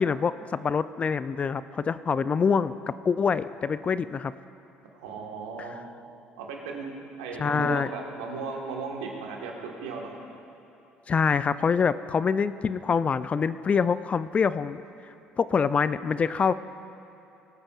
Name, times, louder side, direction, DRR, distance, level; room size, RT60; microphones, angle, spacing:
voice 1, 0.0-4.3 7.4-7.9 11.1-14.8 15.4-16.5, left 6 dB, 35° left, 15 dB, 0.3 m, -25 dB
voice 2, 4.9-5.7 6.4-10.2, right 4 dB, 85° right, 0 dB, 1.4 m, -36 dB
20.5 x 8.7 x 2.4 m, 2.9 s
hypercardioid pair, 65°, 4 cm